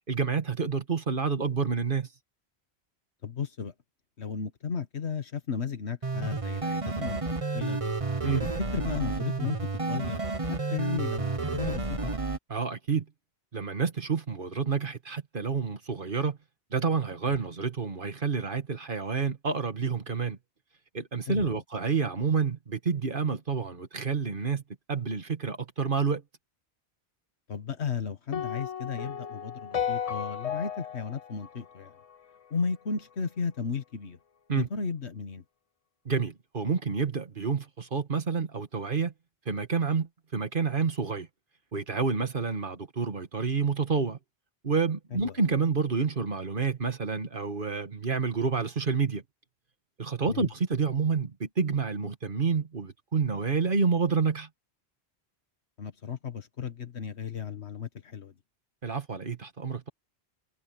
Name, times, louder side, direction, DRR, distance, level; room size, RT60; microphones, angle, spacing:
voice 1, 0.0-2.1 8.2-8.5 12.5-13.1 13.5-16.4 16.7-20.4 20.9-24.6 24.9-26.2 34.5-34.7 36.1-39.1 39.5-41.3 41.7-44.2 44.6-49.2 50.0-54.5 58.8-59.9, right 5 dB, 55° right, 1.8 m, -29 dB
voice 2, 3.2-3.7 4.2-7.9 8.7-10.2 10.5-12.1 21.3-21.5 27.5-31.9 32.5-34.2 34.5-35.4 45.1-45.4 50.2-50.5 55.8-58.3, left 6 dB, 90° left, 1.7 m, -34 dB
sound 1, 6.0-12.4, right 3 dB, 30° right, 1.4 m, -31 dB
sound 2, 28.3-32.6, left 8 dB, 45° left, 0.6 m, -34 dB
omnidirectional pair, 1.1 m